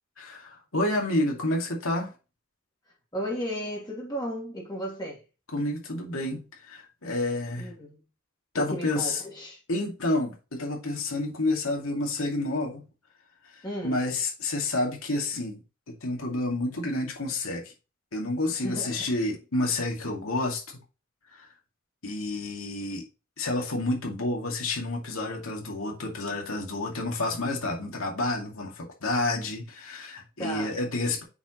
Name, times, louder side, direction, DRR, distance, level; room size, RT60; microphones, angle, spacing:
voice 1, 0.2-2.1 5.5-7.7 8.5-9.2 9.7-12.9 13.8-15.6 15.9-17.7 18.1-20.8 21.3-21.5 22.0-23.1 23.4-31.2, left 2 dB, 75° left, 2.3 m, -29 dB
voice 2, 3.1-5.2 7.6-8.0 8.5-9.6 13.6-14.0 18.5-19.1 30.4-30.8, equal, 20° left, 2.6 m, -34 dB
8.2 x 5.1 x 3.0 m
head